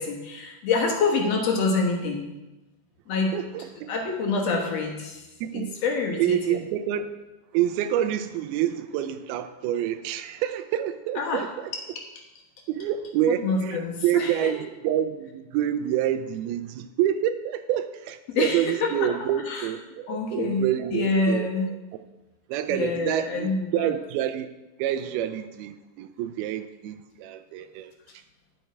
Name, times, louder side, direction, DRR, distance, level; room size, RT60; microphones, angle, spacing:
voice 1, 0.0-2.2 3.1-3.3 3.9-5.2 5.5-6.4 11.2-11.4 13.3-14.5 18.3-19.1 19.5-19.7 20.1-20.7 20.9-21.7 22.7-23.9, left 4 dB, 60° left, 1 dB, 1.9 m, -26 dB
voice 2, 3.3-3.7 5.4-5.8 6.2-7.1 7.5-11.7 12.7-21.5 22.5-24.5 24.8-27.9, right 11 dB, 90° right, 10 dB, 2.5 m, -27 dB
10.5 x 7.9 x 4.6 m, 1.0 s
omnidirectional pair, 4.3 m